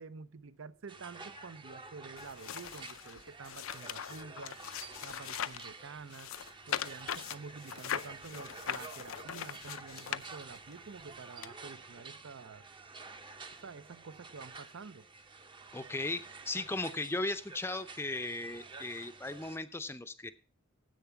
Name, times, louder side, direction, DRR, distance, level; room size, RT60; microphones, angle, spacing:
voice 1, 0.0-4.6 5.0-6.3 6.7-12.6 13.6-15.1, right 4 dB, 70° right, 0.6 m, -49 dB
sound 1, 0.9-19.6, right 4 dB, 25° right, 0.7 m, -50 dB
sound 2, 2.2-5.7 6.1-10.7 11.4-11.5, left 9 dB, 80° left, 0.5 m, -40 dB
voice 2, 15.7-20.3, left 2 dB, 10° left, 0.6 m, -37 dB
10.5 x 8.1 x 5.8 m
head